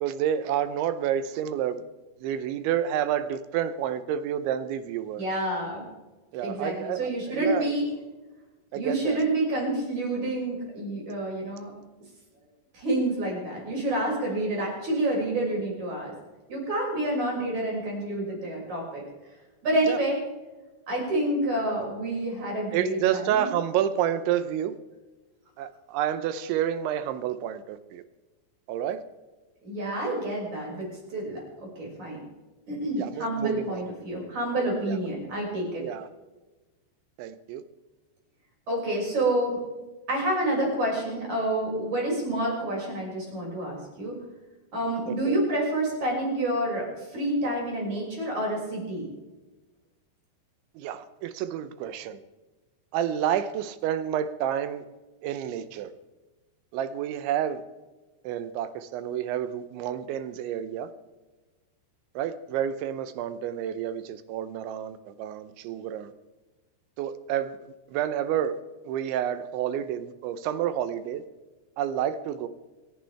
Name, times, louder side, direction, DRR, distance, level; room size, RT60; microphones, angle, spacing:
voice 1, 0.0-1.8 2.2-5.2 6.3-7.7 8.7-9.2 19.9-20.0 22.7-24.8 25.6-28.0 28.7-29.0 33.0-33.9 34.8-35.0 35.8-36.1 37.2-37.6 45.1-45.4 50.8-52.2 52.9-54.8 55.2-55.9 56.7-57.6 58.2-60.9 62.2-66.1 67.0-67.6 67.9-68.6 68.8-71.2 71.8-72.5, right 10 dB, 80° right, 3.1 m, -29 dB
voice 2, 5.2-5.9 6.4-7.9 8.7-11.7 12.7-16.1 16.5-19.0 19.6-20.2 20.9-23.5 29.6-31.4 31.8-32.2 32.7-35.8 38.7-39.6 40.1-44.1 44.7-49.1, right 1 dB, 40° right, 7.3 m, -28 dB
27.0 x 11.5 x 3.5 m
omnidirectional pair, 5.3 m